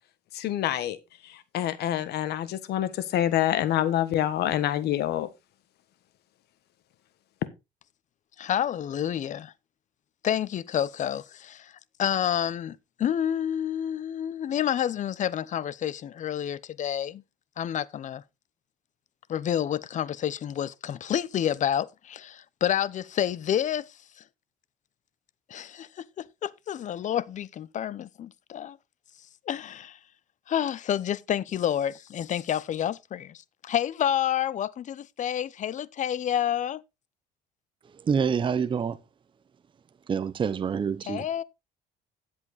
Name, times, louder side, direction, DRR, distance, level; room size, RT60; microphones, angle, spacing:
voice 1, 0.3-1.0 1.2-5.3, left 12 dB, 75° left, 1.4 m, -26 dB
voice 2, 8.4-9.5 10.2-11.7 12.0-17.2 17.6-18.2 19.3-23.9 25.5-28.8 29.5-30.0 30.5-36.8 41.1-41.4, left 10 dB, 45° left, 0.7 m, -29 dB
voice 3, 37.8-39.0 40.1-41.3, right 6 dB, 30° right, 0.7 m, -27 dB
11.0 x 7.8 x 4.0 m
cardioid pair, 110°, 17 cm